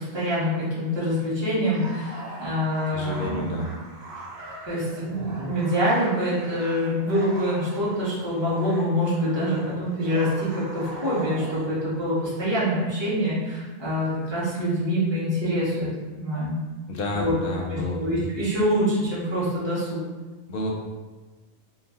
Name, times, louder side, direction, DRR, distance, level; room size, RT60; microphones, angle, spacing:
voice 1, 0.0-3.5 4.7-16.6 17.1-17.3 17.7-20.0, equal, 25° right, -10 dB, 1.0 m, -25 dB
sound 1, 1.6-11.8, right 1 dB, 70° right, 0.9 m, -41 dB
voice 2, 2.9-3.8 16.9-18.0 20.5-20.7, left 1 dB, 65° left, -1 dB, 0.7 m, -30 dB
2.5 x 2.1 x 3.5 m, 1.3 s
omnidirectional pair, 1.1 m